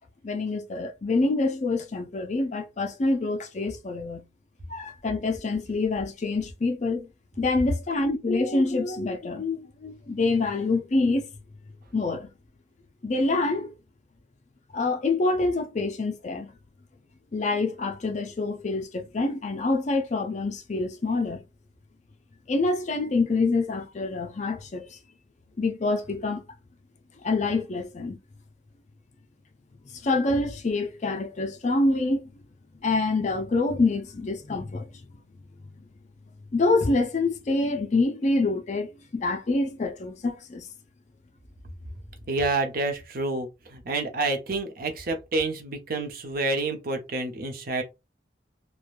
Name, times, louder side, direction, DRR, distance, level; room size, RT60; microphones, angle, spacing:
voice 1, 0.2-4.2 4.7-7.1 7.4-11.2 11.9-12.3 13.0-13.7 14.7-16.5 17.3-21.4 22.5-24.9 25.6-26.4 27.2-28.2 30.0-32.2 32.8-34.9 36.5-38.9 39.1-40.7, left 3 dB, 40° left, 0.4 m, -26 dB
voice 2, 42.3-47.8, right 3 dB, 50° right, 0.7 m, -28 dB
3.1 x 2.2 x 2.4 m
head